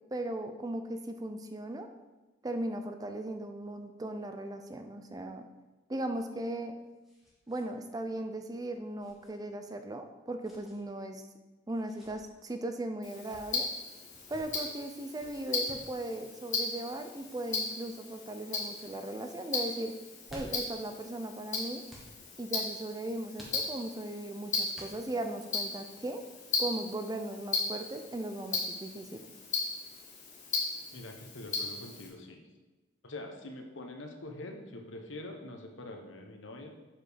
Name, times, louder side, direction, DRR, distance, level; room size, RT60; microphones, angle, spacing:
voice 1, 0.0-1.9 2.4-5.5 5.9-6.8 7.5-11.2 11.7-13.7 14.3-19.9 20.3-21.8 22.4-26.2 26.6-29.2, right 1 dB, 20° right, 7 dB, 0.4 m, -38 dB
sound 1, 6.3-7.7 8.0-8.1 9.0-9.3 10.4-10.8 11.7-12.1 13.0-13.4 14.1-14.4 15.2-15.9 17.1-17.4 18.1-18.4 18.7-18.9 20.0-20.8 21.9-22.1 23.3-24.0 24.7-25.3, equal, ahead, 1.4 m, -53 dB
Tick-tock, 13.0-32.1, left 3 dB, 40° left, 1.5 m, -37 dB
voice 2, 30.9-32.4 33.0-36.7, left 2 dB, 80° left, 4 dB, 1.0 m, -44 dB
7.5 x 4.7 x 5.0 m, 1.1 s
head